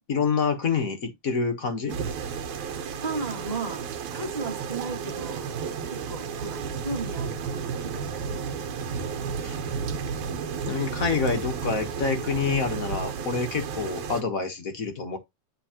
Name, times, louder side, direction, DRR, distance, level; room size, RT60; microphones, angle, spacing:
voice 1, 0.1-2.0 9.4-9.6 10.7-15.2, left 5 dB, 55° left, 0.9 m, -27 dB
sound 1, 1.9-14.2, right 6 dB, 75° right, 2.4 m, -32 dB
voice 2, 3.0-5.5 5.9-8.2 8.5-8.8, right 3 dB, 15° right, 1.9 m, -35 dB
10.5 x 3.7 x 2.9 m
omnidirectional pair, 3.4 m